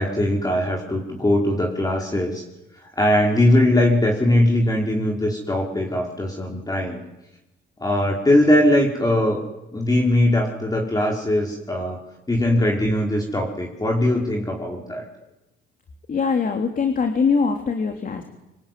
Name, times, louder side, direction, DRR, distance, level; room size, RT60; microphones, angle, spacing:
voice 1, 0.0-2.4 3.0-7.0 7.8-9.4 9.7-12.0 12.3-15.0, left 1 dB, 20° left, 0 dB, 5.1 m, -20 dB
voice 2, 16.1-18.2, left 5 dB, 45° left, 5 dB, 3.5 m, -22 dB
26.0 x 24.0 x 9.5 m, 0.98 s
cardioid pair, 90°, 20 cm